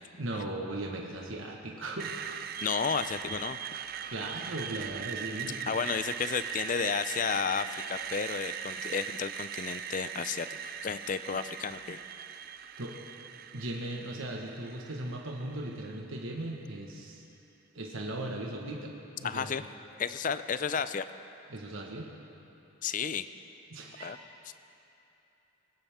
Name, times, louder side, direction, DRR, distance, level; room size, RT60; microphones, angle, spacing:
voice 1, 0.2-2.2 4.1-5.7 12.8-12.9 13.5-17.2 17.7-19.6 21.5-22.1 23.7-24.2, right 1 dB, 80° right, 0 dB, 1.4 m, -38 dB
Screech, 2.0-15.9, right 8 dB, 45° right, 0.5 m, -40 dB
voice 2, 2.6-3.6 5.7-12.0 19.2-19.6 20.0-21.1 22.8-23.3 24.0-24.2 24.4-24.5, left 6 dB, 40° left, 12 dB, 0.4 m, -32 dB
20.5 x 17.0 x 3.6 m, 2.9 s
head